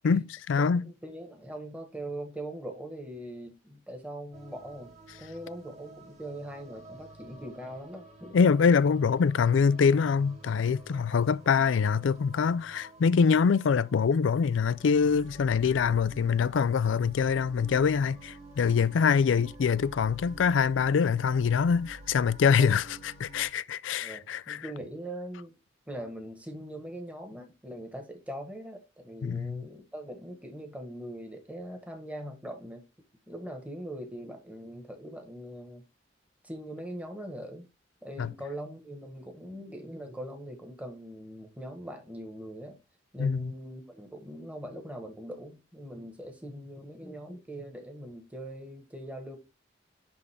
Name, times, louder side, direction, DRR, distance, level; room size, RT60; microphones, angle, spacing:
voice 1, 0.0-0.8 8.3-24.6 29.2-29.7 38.2-38.3 43.2-43.5, left 6 dB, 75° left, 0.4 m, -24 dB
voice 2, 0.6-4.9 5.2-8.4 22.6-22.8 24.0-25.5 25.9-32.8 33.3-35.8 36.4-37.7 38.0-42.8 43.1-49.4, right 1 dB, 10° right, 1.6 m, -41 dB
sound 1, 4.3-23.5, right 2 dB, 35° right, 2.0 m, -50 dB
10.5 x 3.6 x 3.6 m
head